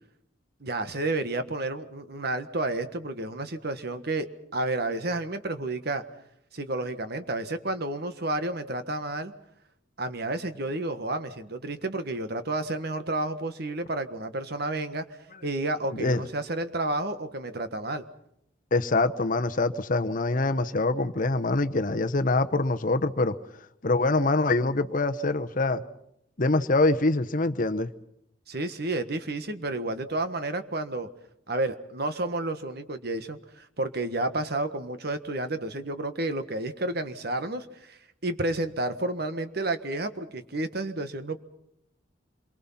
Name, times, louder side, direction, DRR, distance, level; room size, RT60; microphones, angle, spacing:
voice 1, 0.6-4.3 4.5-6.0 6.5-9.3 10.0-15.0 15.4-18.0 28.5-31.1 31.5-41.4, right 2 dB, 55° right, 9 dB, 1.5 m, -31 dB
voice 2, 18.7-23.3 23.8-25.8 26.4-27.9, left 2 dB, 45° left, 10 dB, 0.9 m, -24 dB
27.5 x 23.5 x 5.8 m, 0.77 s
head